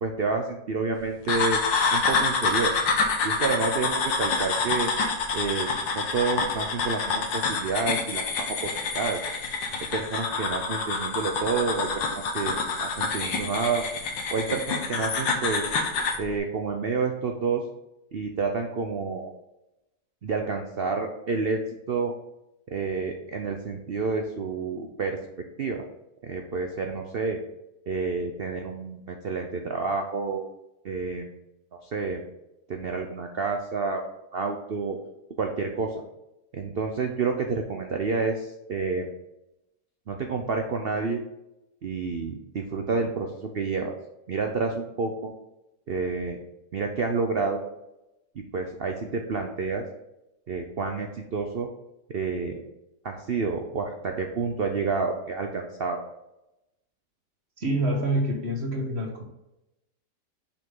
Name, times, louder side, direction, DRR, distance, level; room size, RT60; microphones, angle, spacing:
voice 1, 0.0-1.6 1.9-2.7 3.2-4.9 5.3-5.7 5.9-9.2 9.9-13.8 14.3-15.6 16.2-17.6 18.1-19.3 20.2-21.6 21.9-22.1 22.7-25.2 25.6-25.8 26.2-27.4 27.9-30.4 30.8-31.3 31.7-32.2 32.7-34.0 34.3-35.0 35.4-36.0 36.5-39.1 40.1-41.2 41.8-43.9 44.3-45.3 45.9-46.4 46.7-47.6 48.5-49.8 50.5-51.7 52.1-52.6 53.0-56.0, right 4 dB, 85° right, 4 dB, 0.5 m, -29 dB
sound 1, 1.3-16.2, left 4 dB, 80° left, 1.8 m, -27 dB
voice 2, 57.6-59.2, right 1 dB, 40° right, 1 dB, 1.4 m, -26 dB
6.5 x 5.5 x 3.8 m, 0.91 s
omnidirectional pair, 2.0 m